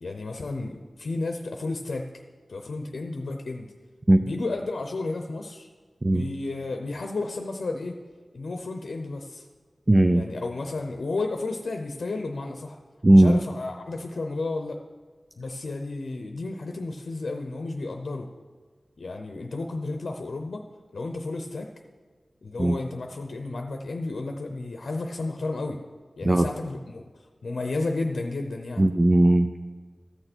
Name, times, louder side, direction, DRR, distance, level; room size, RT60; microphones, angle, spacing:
voice 1, 0.0-2.1 2.5-3.7 4.2-5.7 6.1-8.0 8.3-9.4 10.1-12.8 13.1-14.8 15.4-18.3 19.0-20.6 20.9-21.7 22.4-25.8 26.2-28.8, left 3 dB, 85° left, 4 dB, 0.7 m, -32 dB
voice 2, 9.9-10.2 13.0-13.4 22.6-22.8 26.2-26.5 28.8-29.6, right 1 dB, 30° right, 8 dB, 0.4 m, -18 dB
14.0 x 6.7 x 4.4 m, 1.5 s
wide cardioid pair, 90°, 0 cm